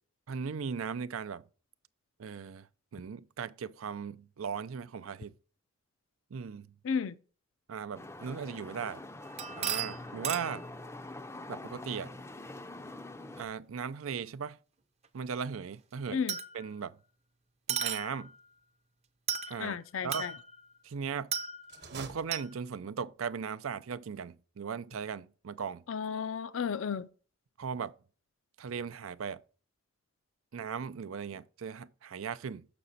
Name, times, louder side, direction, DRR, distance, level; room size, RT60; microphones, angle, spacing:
voice 1, 0.3-1.4 2.2-2.7 2.9-5.3 6.3-6.7 7.7-9.0 9.6-10.6 11.5-12.1 13.4-14.6 15.1-16.2 16.5-17.0 17.7-18.3 19.5-20.3 20.8-21.3 21.9-25.8 27.6-27.9 28.6-29.4 30.5-32.7, right 6 dB, 90° right, 0.5 m, -38 dB
voice 2, 6.8-7.1 16.1-16.4 19.6-20.3 25.9-27.1, left 6 dB, 75° left, 0.5 m, -33 dB
sound 1, 7.9-13.5, left 2 dB, 15° left, 0.4 m, -45 dB
sound 2, 9.2-10.7 14.1-14.2 16.3-16.8 17.7-18.4 19.3-19.7 20.1-20.7 21.3-21.9 22.3-22.5, right 7 dB, 30° right, 0.6 m, -35 dB
sound 3, 21.6-23.0, right 4 dB, 55° right, 1.0 m, -47 dB
6.7 x 6.1 x 4.0 m
head